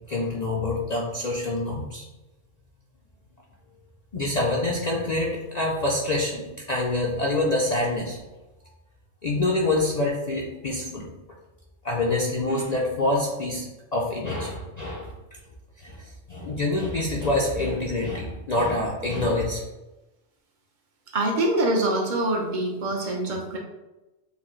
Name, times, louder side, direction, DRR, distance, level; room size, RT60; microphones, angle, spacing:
voice 1, 0.1-2.1 4.1-8.2 9.2-11.1 11.8-15.4 15.8-19.6, left 2 dB, 50° left, -2 dB, 0.5 m, -26 dB
voice 2, 21.1-23.6, right 1 dB, 45° right, 0 dB, 0.9 m, -24 dB
6.6 x 2.2 x 3.1 m, 1.0 s
omnidirectional pair, 1.2 m